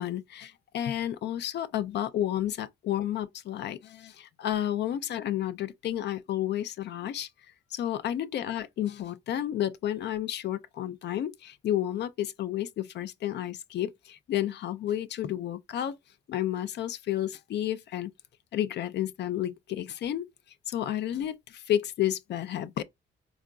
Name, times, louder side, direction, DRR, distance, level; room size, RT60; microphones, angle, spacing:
voice 1, 0.0-7.3 7.7-16.0 16.3-18.1 18.5-20.3 20.7-22.8, left 11 dB, 60° left, 0.4 m, -31 dB
3.7 x 2.4 x 2.3 m
cardioid pair, 90°, 20 cm